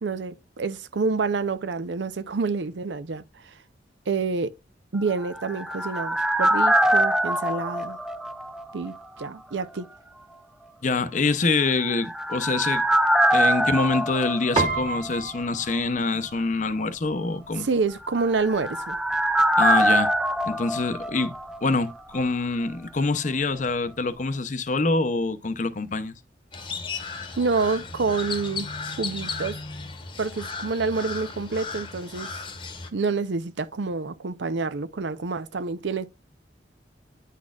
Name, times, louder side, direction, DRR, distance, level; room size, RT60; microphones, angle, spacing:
voice 1, 0.0-3.5 4.1-4.5 4.9-8.0 8.7-9.9 17.6-19.0 27.4-28.7 29.0-29.6 30.2-32.3 32.9-36.1, right 4 dB, 80° right, 0.6 m, -28 dB
sound 1, 5.1-9.0 9.2-9.3 11.7-15.4 15.7-15.8 18.0-21.9 22.2-22.3, right 1 dB, 5° right, 0.3 m, -24 dB
voice 2, 10.8-12.8 13.3-17.7 19.6-20.1 20.4-26.1, left 3 dB, 45° left, 0.6 m, -25 dB
Piano, 14.6-24.2, right 4 dB, 35° right, 1.5 m, -36 dB
Crow, 26.5-32.9, left 4 dB, 25° left, 1.0 m, -35 dB
10.0 x 4.1 x 2.3 m
head